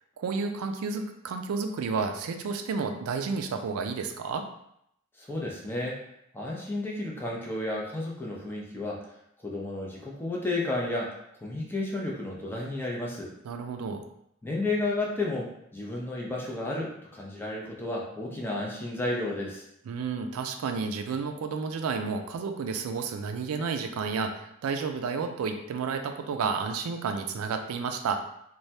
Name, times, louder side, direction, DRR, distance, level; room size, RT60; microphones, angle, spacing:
voice 1, 0.2-4.5 13.4-14.0 19.9-28.2, right 5 dB, 80° right, 6 dB, 0.3 m, -31 dB
voice 2, 5.2-6.0 6.3-9.1 9.4-13.3 14.4-19.6, left 2 dB, 10° left, -3 dB, 0.5 m, -32 dB
3.2 x 2.2 x 2.7 m, 0.75 s
head